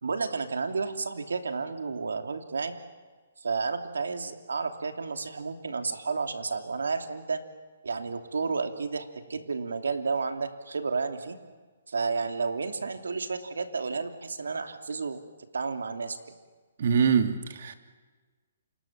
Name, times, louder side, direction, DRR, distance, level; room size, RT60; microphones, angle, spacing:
voice 1, 0.0-2.8 3.4-7.4 7.8-11.4 11.9-15.2 15.5-16.2, right 4 dB, 90° right, 6 dB, 2.9 m, -31 dB
voice 2, 16.8-17.7, right 6 dB, 60° right, 7 dB, 2.9 m, -24 dB
29.5 x 27.0 x 7.5 m, 1.4 s
hypercardioid pair, 150°, 0 cm